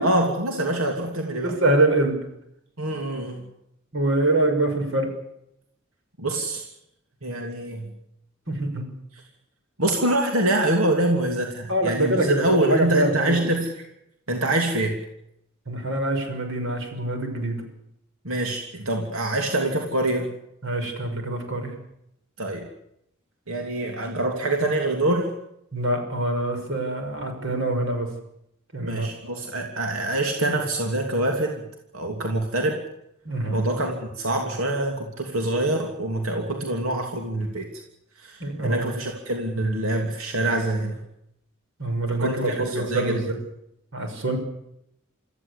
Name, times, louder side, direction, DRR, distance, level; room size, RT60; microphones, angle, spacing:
voice 1, 0.0-1.6 2.8-3.4 6.2-6.6 7.2-7.9 9.1-9.2 9.8-13.9 14.3-15.0 18.2-20.3 22.4-22.7 23.5-25.3 28.8-31.6 31.9-32.8 33.5-37.7 38.2-41.0 42.2-43.3, right 1 dB, 80° right, 2 dB, 3.1 m, -25 dB
voice 2, 1.4-2.2 3.9-5.1 8.5-8.9 11.7-13.5 15.7-17.6 20.6-21.7 25.7-28.1 28.7-29.1 33.2-33.6 38.4-38.8 41.8-43.3 43.9-44.4, right 2 dB, 60° right, 5 dB, 6.0 m, -24 dB
26.0 x 15.0 x 8.4 m, 0.79 s
head